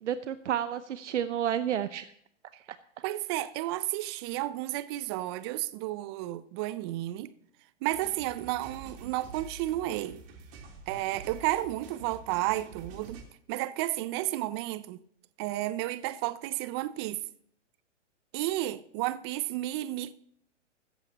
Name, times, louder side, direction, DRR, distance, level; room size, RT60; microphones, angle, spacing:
voice 1, 0.0-2.1 3.4-3.5, right 10 dB, 70° right, 0.8 m, -31 dB
voice 2, 3.0-7.3 7.8-10.2 10.9-13.2 13.5-15.0 15.4-17.2 18.3-20.1, right 16 dB, 20° right, 0.4 m, -32 dB
sound 1, 7.9-13.2, right 4 dB, 50° right, 3.6 m, -47 dB
15.5 x 14.0 x 2.9 m
hypercardioid pair, 125°, 37 cm